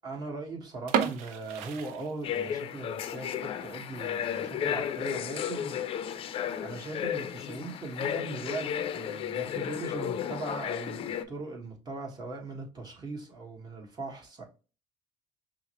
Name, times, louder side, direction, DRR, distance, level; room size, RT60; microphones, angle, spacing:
voice 1, 0.0-5.8 6.3-14.5, right 3 dB, 35° right, 1.5 m, -39 dB
sound 1, 0.8-2.7 3.0-3.1 3.7-3.9 4.3-4.4 4.6-4.7 5.5-5.8, right 8 dB, 75° right, 0.6 m, -32 dB
sound 2, 2.2-11.2, left 9 dB, 50° left, 0.5 m, -33 dB
5.5 x 2.1 x 3.0 m
supercardioid pair, 80°, 12 cm